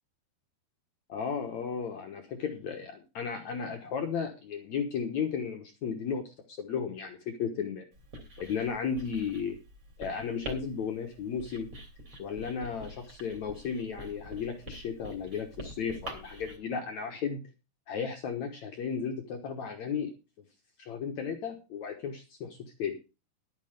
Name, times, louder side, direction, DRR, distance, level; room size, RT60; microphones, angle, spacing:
voice 1, 1.1-7.9 8.4-9.6 10.0-11.7 12.2-17.4 17.9-20.1 20.8-23.0, left 6 dB, 70° left, 5 dB, 1.8 m, -34 dB
Writing, 7.9-16.6, right 1 dB, 35° right, 3.6 m, -46 dB
12.0 x 9.3 x 5.1 m, 0.30 s
omnidirectional pair, 5.0 m